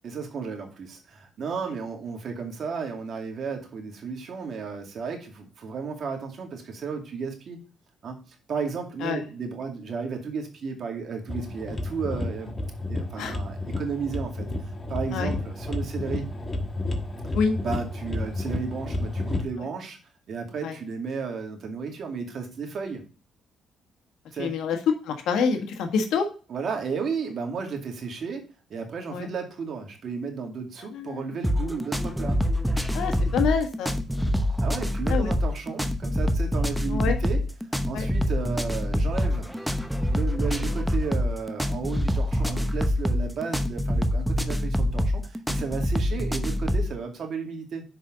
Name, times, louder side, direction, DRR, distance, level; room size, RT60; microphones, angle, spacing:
voice 1, 0.0-7.6 8.0-12.6 12.9-16.3 17.6-20.0 20.3-23.0 24.3-24.5 26.5-32.4 34.6-37.4 37.9-39.5 40.1-47.8, right 5 dB, 60° right, 3 dB, 2.3 m, -33 dB
sound 1, 11.3-19.4, left 2 dB, 25° left, 1.3 m, -31 dB
voice 2, 24.4-24.8 25.0-26.3 29.1-29.3 30.9-31.2 32.9-34.0 35.1-35.3 36.9-37.1 37.9-38.0 46.0-46.1, left 5 dB, 85° left, 5 dB, 1.6 m, -26 dB
sound 2, 31.4-46.9, equal, 5° right, 0.9 m, -25 dB
6.3 x 5.3 x 5.2 m, 0.36 s
cardioid pair, 90°, 0 cm